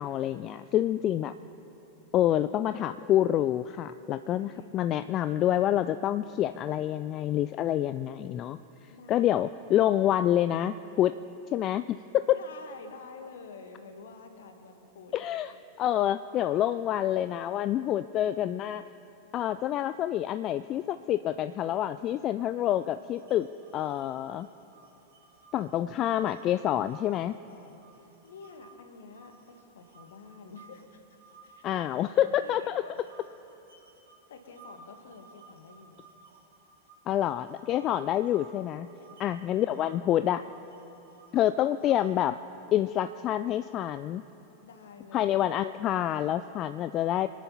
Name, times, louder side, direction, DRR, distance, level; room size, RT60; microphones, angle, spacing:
voice 1, 0.0-1.3 2.1-8.6 9.1-11.1 11.5-12.4 15.1-15.5 15.8-18.8 19.3-23.5 23.7-24.5 25.5-27.3 31.6-32.8 37.1-38.9 39.2-40.4 41.3-42.4 42.7-44.2 45.1-47.3, left 12 dB, 35° left, 13 dB, 0.3 m, -27 dB
voice 2, 4.4-4.9 8.9-9.3 12.3-15.1 27.2-31.2 31.4-32.9 34.3-36.0 37.6-37.8 39.0-39.4 44.6-45.3, left 4 dB, 60° left, 5 dB, 1.7 m, -49 dB
sound 1, 22.7-28.7 29.1-32.5 32.9-42.3, right 4 dB, 65° right, 2.6 m, -57 dB
25.5 x 9.2 x 5.5 m, 3.0 s
figure-of-eight pair, 90°, 0 cm